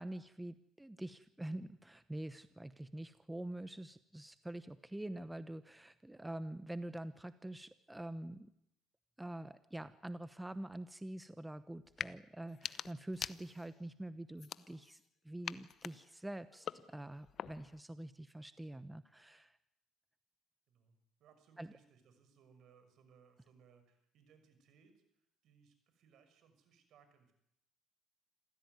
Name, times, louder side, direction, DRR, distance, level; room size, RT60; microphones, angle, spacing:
voice 1, 0.0-8.5 9.2-19.6 21.6-21.7, right 1 dB, 10° right, 12 dB, 1.0 m, -46 dB
sound 1, 11.9-12.1 12.5-13.8 14.4-15.1 15.4-17.8, left 8 dB, 50° left, 0.8 m, -45 dB
voice 2, 20.7-27.3, right 6 dB, 65° right, 9 dB, 6.0 m, -67 dB
27.0 x 15.5 x 9.6 m, 0.79 s
cardioid pair, 100°, 0 cm